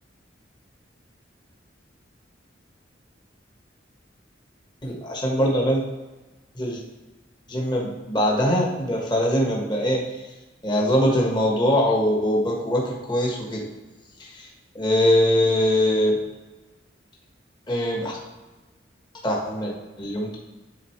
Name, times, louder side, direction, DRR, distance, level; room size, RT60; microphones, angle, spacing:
voice 1, 4.8-5.8 6.5-6.8 7.5-10.0 10.6-13.7 14.2-14.5 14.7-16.2 17.7-18.2 19.2-20.4, equal, 25° left, -3 dB, 1.4 m, -22 dB
10.5 x 4.1 x 3.2 m, 1.2 s
head